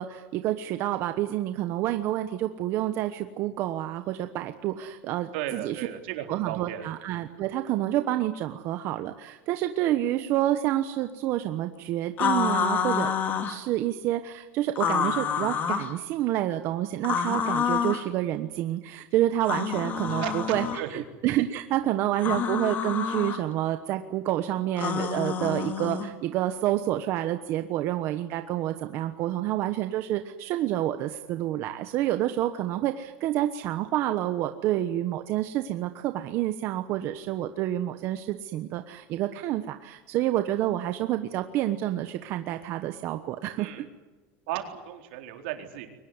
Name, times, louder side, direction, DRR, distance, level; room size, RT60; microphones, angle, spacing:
voice 1, 0.0-5.9 6.3-13.1 13.5-43.9, right 13 dB, 45° right, 8 dB, 1.2 m, -28 dB
voice 2, 5.3-6.9 20.1-21.0 43.6-43.8 44.5-45.9, right 12 dB, 70° right, 4 dB, 4.1 m, -35 dB
sound 1, 12.2-13.6 14.8-15.9 17.0-18.1 19.4-20.8 22.2-23.4 24.8-26.1, left 7 dB, 30° left, 2.2 m, -28 dB
23.5 x 20.0 x 9.7 m, 1.2 s
cardioid pair, 165°, 6 cm